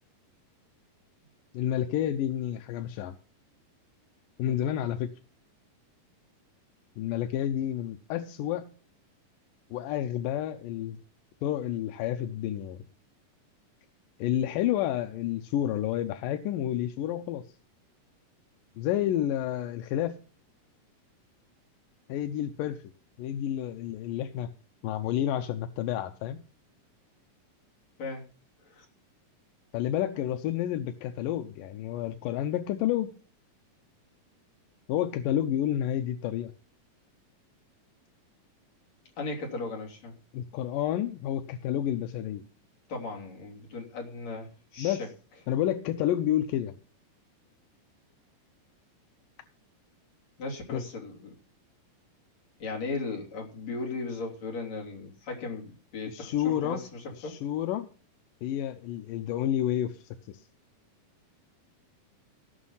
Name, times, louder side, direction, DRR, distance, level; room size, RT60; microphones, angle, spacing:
voice 1, 1.5-3.2 4.4-5.1 7.0-8.7 9.7-11.0 11.4-12.9 14.2-17.5 18.8-20.2 22.1-22.8 23.2-24.5 24.8-26.4 29.7-33.1 34.9-36.5 40.3-42.4 44.8-45.1 45.5-46.8 50.7-50.8 56.1-56.8 57.2-57.9 58.4-60.4, left 11 dB, 85° left, 7 dB, 2.3 m, -30 dB
voice 2, 39.2-40.2 42.9-45.1 50.4-51.3 52.6-57.4, left 3 dB, 55° left, -1 dB, 4.2 m, -37 dB
18.0 x 6.2 x 5.6 m, 0.38 s
omnidirectional pair, 3.8 m